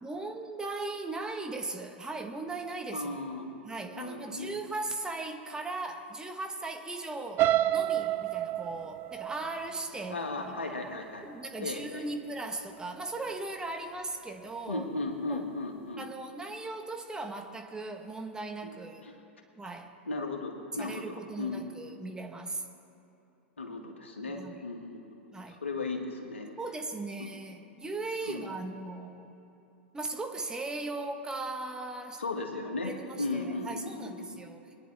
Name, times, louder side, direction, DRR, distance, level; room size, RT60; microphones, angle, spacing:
voice 1, 0.0-3.2 3.6-10.5 11.2-14.8 15.3-15.5 16.0-19.0 19.6-19.9 20.8-22.6 24.3-24.5 25.3-25.6 26.6-29.3 29.9-32.2 32.8-34.6, right 2 dB, 10° right, 4 dB, 1.3 m, -38 dB
voice 2, 2.9-3.5 3.9-4.6 10.1-11.3 11.6-12.1 14.7-16.1 18.6-18.8 19.0-19.2 20.1-21.8 23.6-25.1 25.5-26.5 28.3-28.6 32.2-34.4, left 3 dB, 80° left, 3 dB, 1.9 m, -36 dB
sound 1, 7.4-11.3 11.8-12.1 12.5-12.6, right 13 dB, 35° right, 0.4 m, -30 dB
22.0 x 10.0 x 3.5 m, 3.0 s
figure-of-eight pair, 100°, 6 cm